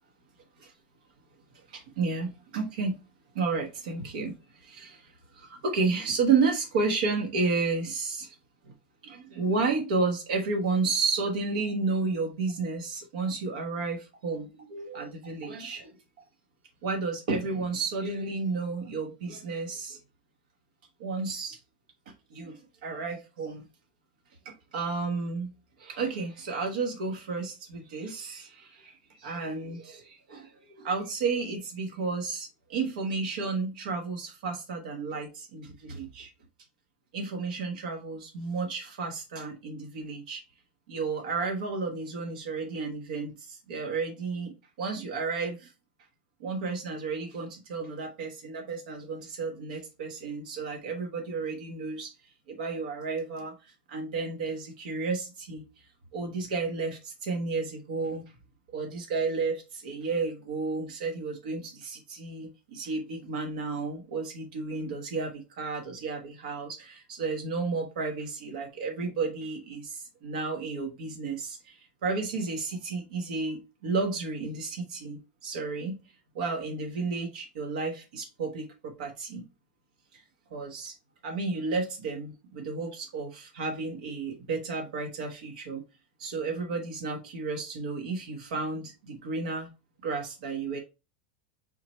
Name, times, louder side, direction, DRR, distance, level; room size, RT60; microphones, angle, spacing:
voice 1, 1.5-3.0 3.3-8.4 8.6-8.7 9.0-16.0 16.8-20.0 21.0-21.6 22.1-23.7 24.4-25.5 25.8-36.3 37.1-40.4 40.9-45.7 46.4-52.1 52.5-55.8 56.1-58.2 58.7-76.0 76.3-79.4 80.1-80.2 80.5-80.9 81.2-85.8 86.2-89.7 90.0-90.8, right 4 dB, 70° right, 1.1 m, -32 dB
4.3 x 3.8 x 3.1 m
supercardioid pair, 175°, 5 cm